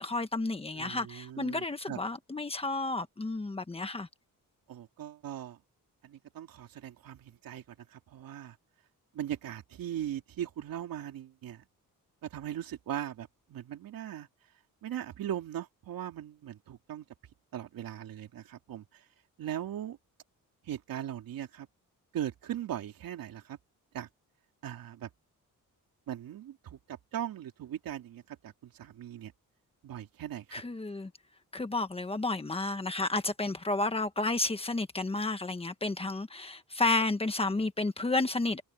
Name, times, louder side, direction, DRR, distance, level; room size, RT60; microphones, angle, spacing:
voice 1, 0.0-4.1 30.5-31.1 31.5-38.6, left 2 dB, 15° left, 1.4 m, -31 dB
voice 2, 0.7-2.0 4.7-5.6 6.0-8.6 9.1-11.6 12.2-14.3 14.8-17.0 17.5-18.8 19.4-20.0 20.6-21.7 22.1-23.6 23.9-24.1 24.6-25.1 26.1-29.3 29.8-30.6, right 11 dB, 85° right, 2.8 m, -39 dB
wide cardioid pair, 155°, 34 cm